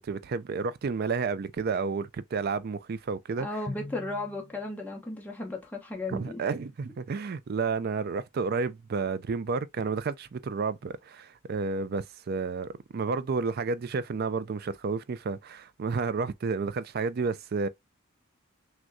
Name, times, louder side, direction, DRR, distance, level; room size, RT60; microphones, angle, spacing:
voice 1, 0.0-3.5 6.1-17.7, right 4 dB, 45° right, 0.4 m, -31 dB
voice 2, 3.4-6.4, left 2 dB, 10° left, 1.0 m, -35 dB
Drum, 3.7-5.4, left 2 dB, 35° left, 0.6 m, -43 dB
6.1 x 2.2 x 2.6 m
head